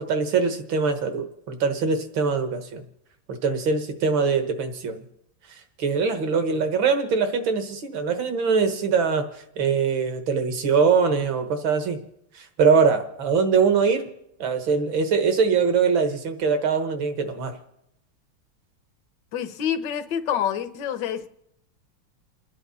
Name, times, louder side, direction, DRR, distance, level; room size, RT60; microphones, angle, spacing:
voice 1, 0.0-2.8 3.3-5.0 5.8-12.0 12.4-14.0 14.4-17.6, right 5 dB, 70° right, 6 dB, 2.1 m, -22 dB
voice 2, 19.3-21.3, left 9 dB, 65° left, 9 dB, 1.4 m, -27 dB
29.5 x 10.0 x 4.2 m, 0.81 s
omnidirectional pair, 2.3 m